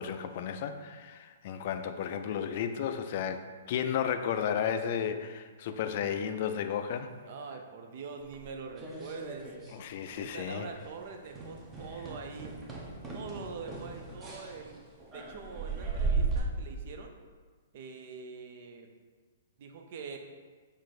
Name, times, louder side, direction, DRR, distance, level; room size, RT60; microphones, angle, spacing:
voice 1, 0.0-7.1 9.7-10.7, left 8 dB, 50° left, 8 dB, 0.3 m, -33 dB
voice 2, 7.3-9.5 10.2-12.6 13.1-14.7 15.1-17.2 17.7-18.9 19.6-20.2, right 5 dB, 50° right, 4 dB, 0.5 m, -44 dB
sound 1, 8.3-9.8 10.0-10.4 10.7-10.9 11.3-16.4, right 4 dB, 20° right, 0.8 m, -36 dB
4.4 x 2.6 x 4.1 m, 1.5 s
hypercardioid pair, 125°, 0 cm